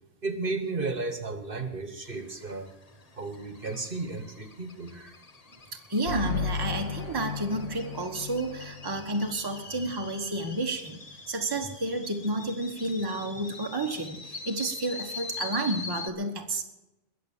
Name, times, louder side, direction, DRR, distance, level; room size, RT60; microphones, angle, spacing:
voice 1, 0.2-2.7 3.2-5.2, right 3 dB, 45° right, 8 dB, 1.6 m, -34 dB
sound 1, 2.1-16.1, left 4 dB, 30° left, 1.1 m, -43 dB
voice 2, 5.9-11.0 11.3-16.6, right 2 dB, 20° right, 3 dB, 1.3 m, -31 dB
sound 2, 6.1-9.6, left 4 dB, 70° left, 1.9 m, -35 dB
21.0 x 7.5 x 7.3 m, 0.96 s
omnidirectional pair, 1.3 m